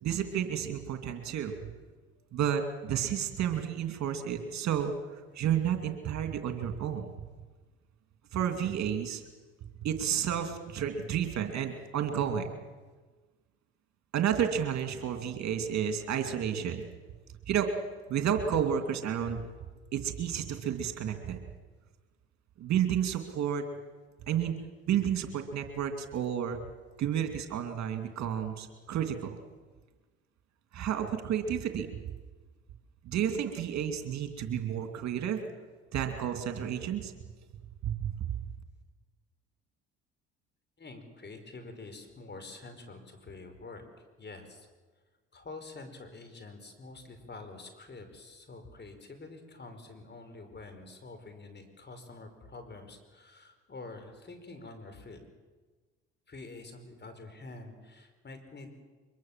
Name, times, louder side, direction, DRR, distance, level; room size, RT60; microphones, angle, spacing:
voice 1, 0.0-1.6 2.3-4.9 5.4-7.1 8.3-9.2 9.8-12.5 14.1-16.9 17.5-17.7 18.1-19.4 19.9-21.4 22.6-23.6 24.3-24.5 24.9-26.6 27.0-29.4 30.7-31.9 33.0-35.4 35.9-37.1 37.8-38.4, right 9 dB, 60° right, 6 dB, 2.7 m, -31 dB
voice 2, 40.8-43.8 44.2-44.7 45.3-55.2 56.3-58.8, left 3 dB, 35° left, 7 dB, 5.1 m, -47 dB
23.5 x 22.5 x 7.5 m, 1.3 s
supercardioid pair, 65°, 32 cm